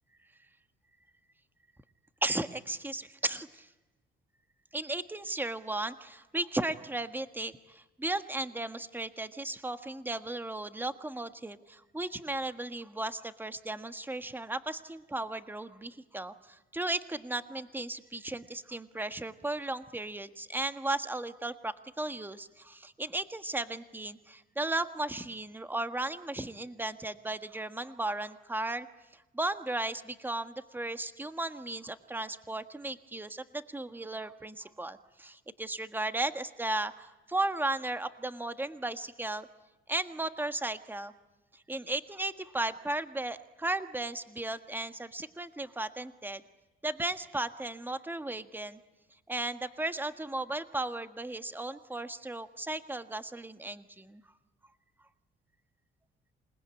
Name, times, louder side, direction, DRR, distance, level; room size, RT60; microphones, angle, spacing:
voice 1, 2.2-3.7 4.7-28.9 29.1-39.5 39.9-41.1 41.5-46.4 46.8-48.8 49.3-54.2, right 2 dB, 10° right, 9 dB, 1.5 m, -35 dB
28.0 x 20.0 x 9.7 m, 1.1 s
cardioid pair, 90°, 20 cm